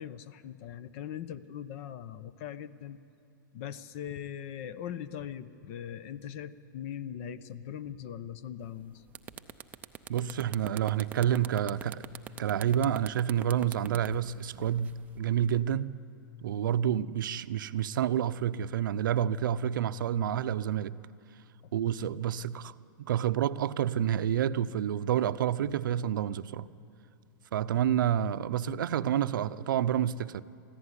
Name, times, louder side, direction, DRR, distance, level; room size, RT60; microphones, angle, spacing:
voice 1, 0.0-3.0 3.5-9.0, left 9 dB, 40° left, 0.8 m, -40 dB
sound 1, 8.6-8.8 9.1-15.2, right 8 dB, 15° right, 0.6 m, -43 dB
voice 2, 10.1-12.1 12.4-15.9 16.4-20.9 21.7-26.7 27.5-30.4, right 10 dB, 70° right, 0.7 m, -29 dB
23.0 x 15.0 x 9.9 m
hypercardioid pair, 155°, 11 cm